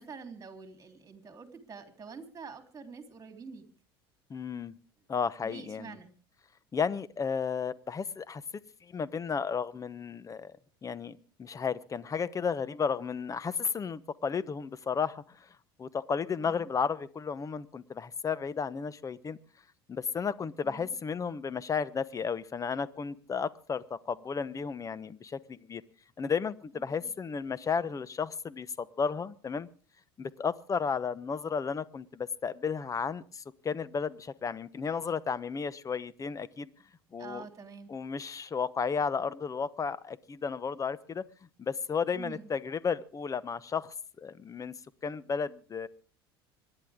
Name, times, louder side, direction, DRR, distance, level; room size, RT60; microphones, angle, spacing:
voice 1, 0.0-3.7 5.4-6.1 16.4-16.7 20.6-20.9 26.7-27.1 37.2-37.9 42.1-42.5, right 5 dB, 25° right, 5 dB, 3.5 m, -47 dB
voice 2, 4.3-4.7 5.1-6.0 6.7-8.4 8.8-10.5 10.8-15.5 15.8-19.4 19.9-25.8 26.2-29.7 30.2-36.7 37.1-37.5 37.9-41.2 41.6-44.7 45.0-45.9, left 6 dB, 25° left, 17 dB, 0.9 m, -33 dB
26.0 x 11.0 x 3.6 m, 0.41 s
hypercardioid pair, 80°, 13 cm